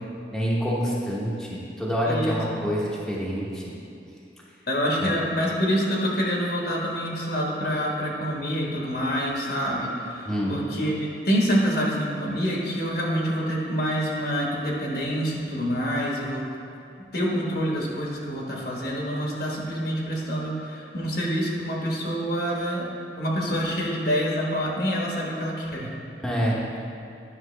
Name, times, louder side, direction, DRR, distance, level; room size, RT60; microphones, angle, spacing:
voice 1, 0.3-3.7 5.0-5.1 10.3-10.5 26.2-26.6, equal, 5° left, -6 dB, 0.9 m, -27 dB
voice 2, 2.0-2.4 4.7-16.4 17.1-22.9 23.2-25.9, equal, 60° left, -2 dB, 1.3 m, -26 dB
9.6 x 5.9 x 3.3 m, 2.7 s
head